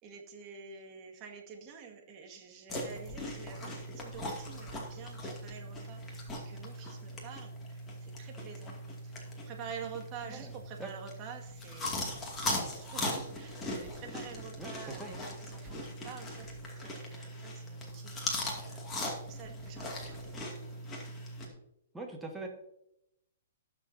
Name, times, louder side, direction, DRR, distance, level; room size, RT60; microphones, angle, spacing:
voice 1, 0.0-18.8 19.2-20.5 21.4-21.6, right 6 dB, 35° right, 1 dB, 2.0 m, -49 dB
sound 1, 2.7-21.5, left 1 dB, 15° left, 2.4 m, -40 dB
voice 2, 14.6-15.1 21.9-22.5, right 2 dB, 10° right, 1 dB, 1.8 m, -42 dB
19.5 x 6.7 x 2.8 m, 0.82 s
hypercardioid pair, 120°, 0 cm